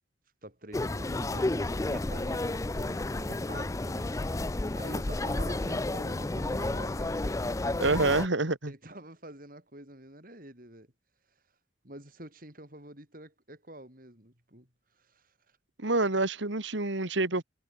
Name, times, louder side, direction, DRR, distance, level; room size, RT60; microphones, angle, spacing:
voice 1, 0.4-7.9 8.7-10.9 11.8-14.7 14.9-15.6, right 1 dB, 45° right, 5.7 m, -47 dB
sound 1, 0.7-8.3, left 2 dB, 15° left, 0.4 m, -31 dB
voice 2, 7.8-8.7 15.8-17.4, right 2 dB, 75° right, 2.0 m, -27 dB
head